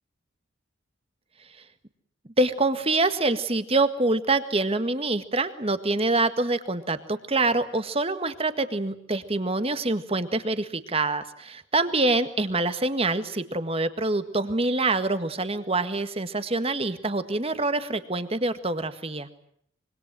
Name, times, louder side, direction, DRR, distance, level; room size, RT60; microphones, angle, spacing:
voice 1, 2.4-19.3, right 2 dB, 30° right, 11 dB, 1.7 m, -25 dB
25.5 x 24.0 x 7.5 m, 0.67 s
head